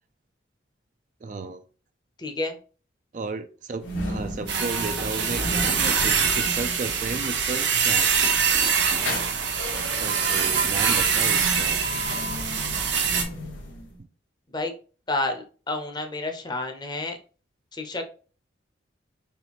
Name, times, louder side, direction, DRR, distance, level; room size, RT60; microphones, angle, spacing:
voice 1, 1.2-1.6 3.1-8.1 10.0-11.8 14.0-14.1, right 4 dB, 40° right, 9 dB, 0.4 m, -33 dB
voice 2, 2.2-2.6 14.5-14.7 15.1-17.2 17.7-18.1, left 2 dB, 20° left, 5 dB, 0.6 m, -30 dB
sound 1, 3.8-14.0, equal, 90° left, 1.4 m, -35 dB
sound 2, 4.5-13.2, right 6 dB, 70° right, 0.9 m, -24 dB
4.3 x 3.2 x 3.0 m, 0.38 s
head